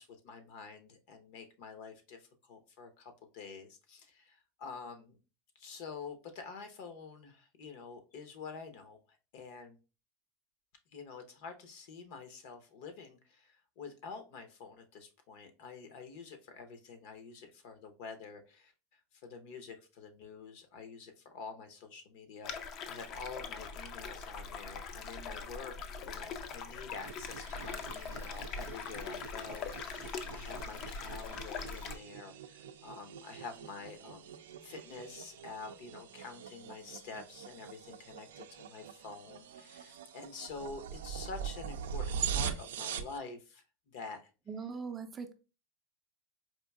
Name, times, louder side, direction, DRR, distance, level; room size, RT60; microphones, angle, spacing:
voice 1, 0.0-5.2 5.5-9.0 9.3-9.8 10.9-25.7 26.0-34.3 34.6-44.3, left 5 dB, 60° left, 8 dB, 0.7 m, -48 dB
sound 1, 22.4-32.0, left 5 dB, 40° left, 0.4 m, -42 dB
sound 2, 26.9-43.2, right 8 dB, 90° right, 0.4 m, -43 dB
voice 2, 44.5-45.3, right 5 dB, 20° right, 7 dB, 0.4 m, -40 dB
4.4 x 2.6 x 2.3 m, 0.32 s
supercardioid pair, 135°, 0 cm